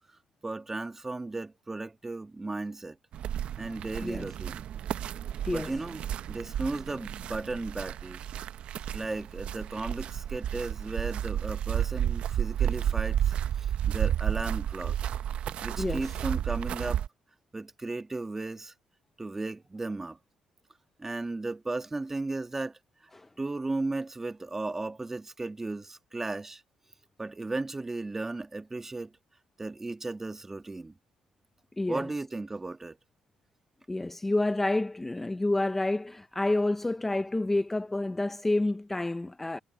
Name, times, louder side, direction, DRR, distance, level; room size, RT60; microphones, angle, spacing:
voice 1, 0.4-3.0 3.6-4.6 5.5-6.0 6.3-8.2 8.9-14.9 15.6-17.0 17.5-18.7 19.2-20.2 21.0-22.8 23.4-26.6 27.2-29.1 29.6-30.9 31.9-33.0, right 2 dB, 15° right, 1.4 m, -35 dB
sound 1, 3.1-17.1, right 10 dB, 65° right, 0.6 m, -32 dB
voice 2, 15.8-16.1 23.1-23.3 31.8-32.1 33.9-39.6, left 2 dB, 10° left, 0.6 m, -29 dB
cardioid pair, 110°, 2 cm